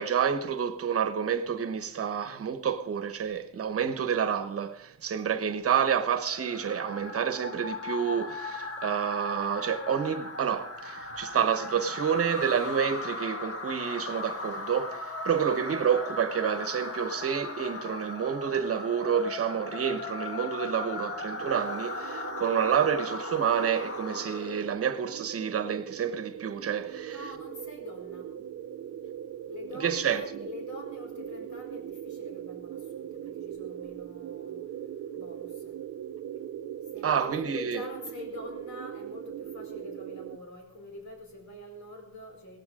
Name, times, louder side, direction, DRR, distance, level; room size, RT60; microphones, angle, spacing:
voice 1, 0.0-27.2 29.8-30.2 37.0-37.8, right 7 dB, 45° right, 1.1 m, -29 dB
sound 1, 5.8-24.7, left 3 dB, 45° left, 1.6 m, -38 dB
sound 2, 21.4-40.4, right 10 dB, 65° right, 0.7 m, -40 dB
voice 2, 26.7-28.3 29.5-34.6 35.1-35.8 36.9-42.6, left 2 dB, 65° left, 4.6 m, -45 dB
17.5 x 14.0 x 3.7 m
cardioid pair, 145°, 31 cm